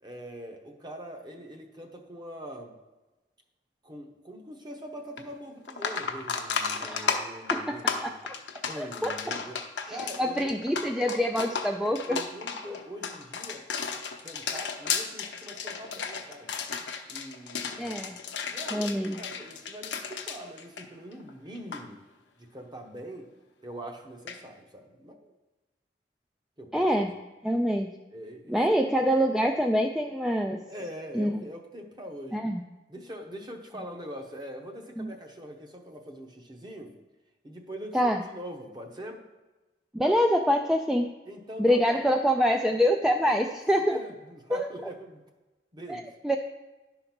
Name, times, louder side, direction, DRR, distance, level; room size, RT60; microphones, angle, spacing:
voice 1, 0.0-2.8 3.8-8.2 8.7-9.6 9.9-10.6 11.7-13.7 14.2-16.6 17.1-18.1 18.5-22.0 22.4-23.3 23.6-25.3 26.6-26.9 28.1-28.8 30.7-32.4 32.9-36.9 37.4-39.2 41.2-42.1 43.2-43.5 43.9-45.2 45.7-46.1, equal, 25° right, 3 dB, 1.0 m, -43 dB
sound 1, 5.2-5.3 5.7-21.3 21.5-21.8 24.3-24.4, left 6 dB, 80° left, 0.8 m, -33 dB
voice 2, 6.8-7.3 7.5-8.1 8.8-9.4 9.9-12.2 17.8-18.2 18.7-19.2 26.7-27.1 27.4-27.9 28.5-30.6 31.2-31.4 32.3-32.6 35.0-35.1 37.9-38.2 39.9-41.1 41.6-44.0 44.5-44.9 45.9-46.4, equal, 5° right, 3 dB, 0.3 m, -26 dB
11.0 x 3.9 x 5.9 m, 1.1 s
head